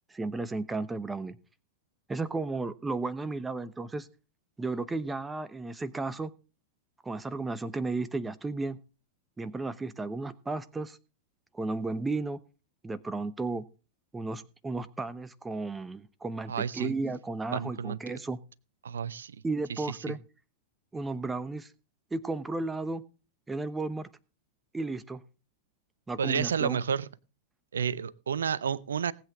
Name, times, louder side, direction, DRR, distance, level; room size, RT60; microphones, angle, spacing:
voice 1, 0.1-1.4 2.1-4.1 4.6-6.3 7.0-8.8 9.4-11.0 11.5-12.4 12.8-13.6 14.1-18.4 19.4-20.2 20.9-21.7 22.1-23.0 23.5-24.1 24.7-25.2 26.1-26.8, right 3 dB, 10° right, 15 dB, 1.0 m, -34 dB
voice 2, 16.5-16.9 17.5-18.0 18.8-19.4 19.7-20.1 26.2-27.1 27.7-29.1, right 7 dB, 70° right, 20 dB, 0.7 m, -31 dB
19.0 x 8.3 x 3.7 m, 0.34 s
figure-of-eight pair, 90°, 0 cm